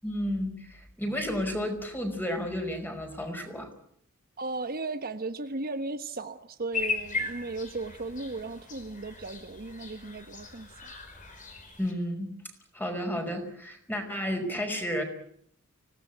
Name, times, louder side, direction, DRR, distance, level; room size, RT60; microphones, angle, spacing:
voice 1, 0.0-3.7 11.8-12.3 12.7-15.0, equal, 10° left, 5 dB, 5.3 m, -32 dB
voice 2, 4.4-10.9, right 3 dB, 45° right, 8 dB, 1.2 m, -36 dB
sound 1, 6.7-11.9, left 4 dB, 35° left, 5.0 m, -37 dB
25.5 x 18.0 x 9.3 m, 0.69 s
head